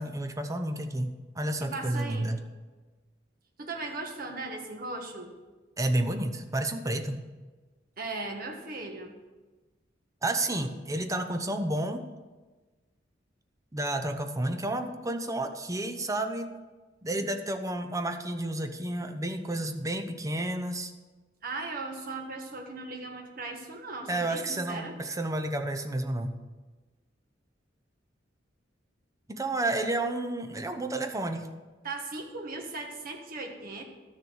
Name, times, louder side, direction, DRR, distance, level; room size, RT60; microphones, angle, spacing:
voice 1, 0.0-2.4 5.8-7.2 10.2-12.0 13.7-16.5 17.0-20.9 24.1-26.4 29.3-31.5, right 1 dB, 15° right, 6 dB, 0.8 m, -31 dB
voice 2, 1.6-2.3 3.6-5.3 8.0-9.1 14.9-15.0 21.4-24.9 31.8-33.8, right 3 dB, 50° right, 2 dB, 1.6 m, -38 dB
12.0 x 6.9 x 6.3 m, 1.3 s
head